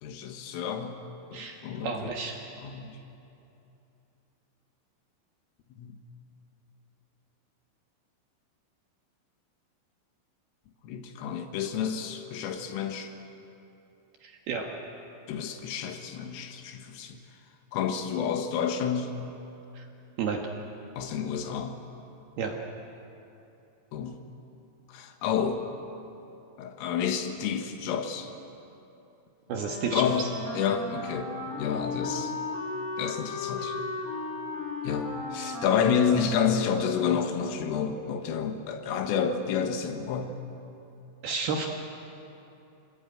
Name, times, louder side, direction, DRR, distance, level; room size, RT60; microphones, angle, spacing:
voice 1, 0.0-2.2 2.6-3.0 5.8-6.0 10.8-13.1 15.3-17.2 17.7-19.3 21.0-21.8 23.9-24.2 24.9-25.7 26.6-28.3 29.9-31.3 31.6-32.3 33.0-33.8 34.8-40.3, left 7 dB, 80° left, 6 dB, 4.1 m, -30 dB
voice 2, 1.8-2.4 14.2-14.7 19.8-19.9 20.2-20.4 22.4-22.6 29.5-30.3 41.2-41.7, right 5 dB, 65° right, 2 dB, 2.7 m, -31 dB
Wind instrument woodwind instrument, 29.5-37.7, left 3 dB, 15° left, 2.8 m, -36 dB
26.0 x 21.0 x 9.1 m, 2.8 s
omnidirectional pair, 6.0 m